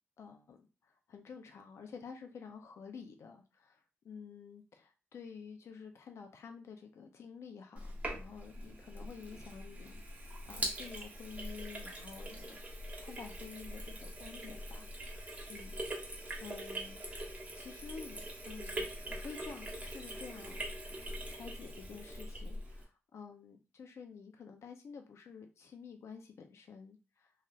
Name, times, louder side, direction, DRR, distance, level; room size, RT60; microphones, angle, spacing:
voice 1, 0.2-12.6 13.0-15.2 15.5-15.8 16.4-17.0 17.5-20.6 21.3-27.3, left 6 dB, 75° left, 5 dB, 0.5 m, -50 dB
Sink (filling or washing), 7.8-22.8, right 1 dB, 30° right, 0.9 m, -43 dB
3.2 x 2.7 x 2.3 m, 0.31 s
wide cardioid pair, 100°, 5 cm